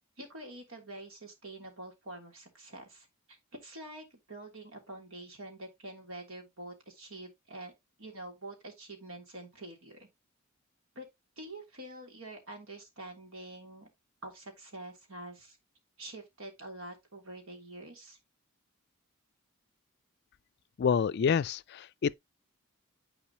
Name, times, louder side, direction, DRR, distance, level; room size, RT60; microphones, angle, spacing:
voice 1, 0.2-7.7 8.0-10.1 10.9-11.1 11.4-13.9 14.2-15.6 16.0-18.2, right 1 dB, 75° right, 3.2 m, -46 dB
voice 2, 20.8-22.1, left 6 dB, 50° left, 0.3 m, -28 dB
10.5 x 4.9 x 2.9 m
head